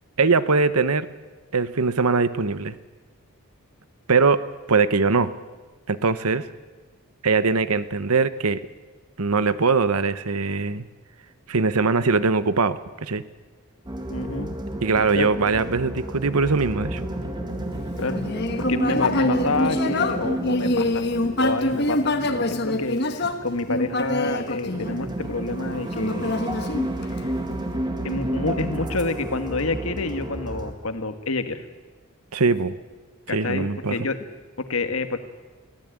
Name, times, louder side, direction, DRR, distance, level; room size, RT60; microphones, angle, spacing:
voice 1, 0.2-1.1 1.5-2.8 4.1-4.4 4.7-5.3 5.9-6.4 7.2-8.6 9.2-10.9 11.5-13.2 14.8-17.0 32.3-32.8 33.3-34.0, right 4 dB, 85° right, 14 dB, 1.0 m, -21 dB
sound 1, 13.9-30.7, right 1 dB, 20° right, 1.8 m, -31 dB
voice 2, 14.1-14.6 15.1-15.3 18.0-18.2 18.6-21.1 21.4-26.6 27.0-27.3 28.0-31.6 33.3-34.2 34.7-35.2, left 3 dB, 70° left, 8 dB, 1.6 m, -28 dB
Human voice, 18.0-25.4 25.9-27.4, left 1 dB, 45° left, 1.4 m, -25 dB
23.0 x 16.0 x 9.0 m, 1.3 s
head